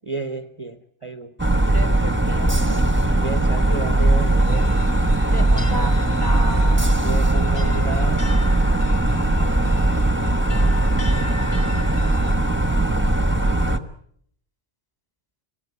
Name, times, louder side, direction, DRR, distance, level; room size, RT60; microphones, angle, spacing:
voice 1, 0.0-1.3 3.2-4.7 7.0-8.3, right 3 dB, 30° right, 9 dB, 1.2 m, -31 dB
sound 1, 1.4-13.8, right 2 dB, 10° right, 1.4 m, -19 dB
voice 2, 1.7-2.9 5.3-6.9, equal, 20° left, 8 dB, 2.3 m, -33 dB
sound 2, 4.4-12.3, left 3 dB, 60° left, 2.4 m, -40 dB
26.5 x 17.5 x 9.6 m, 0.67 s
omnidirectional pair, 1.2 m